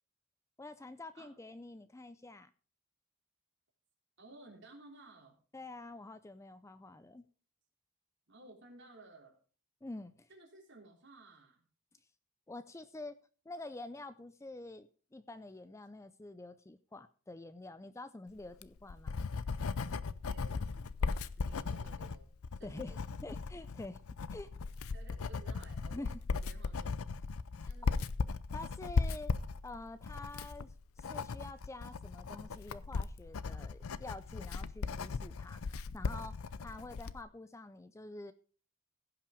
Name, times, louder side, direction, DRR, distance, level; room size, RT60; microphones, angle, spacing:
voice 1, 0.6-2.5 5.5-7.2 9.8-10.3 12.5-13.2 13.5-19.2 22.6-24.0 24.3-24.5 25.9-26.2 27.6-27.7 28.5-29.3 29.6-38.3, left 2 dB, 15° left, 13 dB, 0.4 m, -47 dB
voice 2, 4.2-5.4 8.3-9.4 10.3-11.7 20.3-23.2 24.9-26.1 26.3-27.0 27.7-28.1, right 1 dB, 55° right, 1 dB, 3.5 m, -56 dB
Writing, 18.4-37.2, left 4 dB, 80° left, 0.6 m, -37 dB
16.0 x 5.9 x 5.1 m, 0.39 s
head